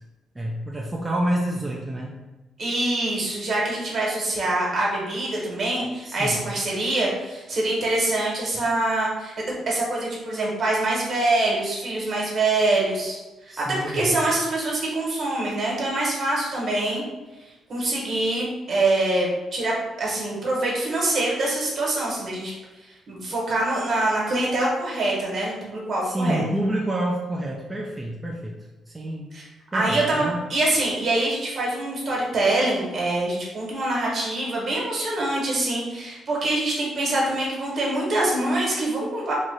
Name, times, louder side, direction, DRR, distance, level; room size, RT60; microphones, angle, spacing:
voice 1, 0.4-2.2 6.0-6.4 13.5-14.2 26.0-28.6 28.9-29.3 29.7-30.4, right 1 dB, 15° right, -2 dB, 0.5 m, -28 dB
voice 2, 2.6-9.3 9.7-13.2 13.5-17.0 17.7-22.5 23.1-26.4 29.3-29.4 29.7-30.2 30.5-39.3, right 2 dB, 55° right, -3 dB, 1.4 m, -24 dB
3.0 x 2.5 x 4.0 m, 1.1 s
cardioid pair, 90°, 0 cm